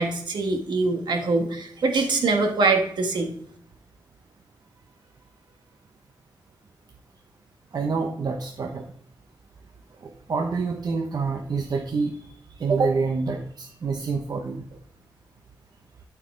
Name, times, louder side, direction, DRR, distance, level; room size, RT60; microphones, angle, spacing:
voice 1, 0.0-3.3, right 3 dB, 80° right, 3 dB, 1.5 m, -23 dB
voice 2, 7.7-8.8 10.0-12.1 12.6-14.6, right 4 dB, 60° right, 2 dB, 0.8 m, -27 dB
12.0 x 4.7 x 3.8 m, 0.65 s
wide cardioid pair, 85°, 8 cm